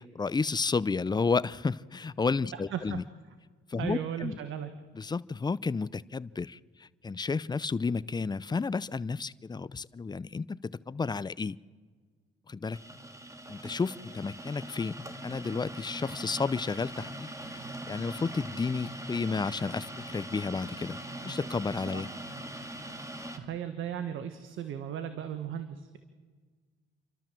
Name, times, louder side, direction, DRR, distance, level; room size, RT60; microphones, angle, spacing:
voice 1, 0.0-3.0 3.7-4.4 5.0-11.6 12.5-12.8 13.5-21.0 21.2-22.1, left 4 dB, 20° left, 18 dB, 0.6 m, -32 dB
voice 2, 2.5-3.0 3.8-4.7 21.9-22.0 23.4-26.0, right 9 dB, 80° right, 9 dB, 1.4 m, -36 dB
sound 1, 12.7-23.4, right 1 dB, 15° right, 2.2 m, -42 dB
29.0 x 12.5 x 7.5 m, 1.5 s
cardioid pair, 90°, 20 cm